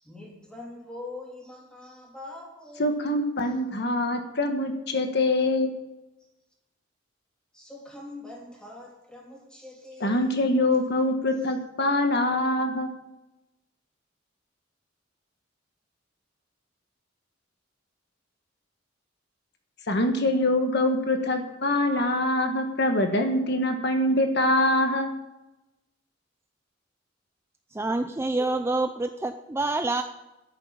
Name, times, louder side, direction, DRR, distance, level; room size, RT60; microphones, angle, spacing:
voice 1, 0.1-2.8 7.6-10.2, left 2 dB, 5° left, -3 dB, 3.4 m, -43 dB
voice 2, 2.8-5.7 10.0-12.9 19.9-25.1, left 1 dB, 60° left, 5 dB, 1.4 m, -24 dB
voice 3, 27.7-30.0, right 2 dB, 15° right, 7 dB, 0.4 m, -27 dB
10.5 x 9.0 x 7.4 m, 0.98 s
head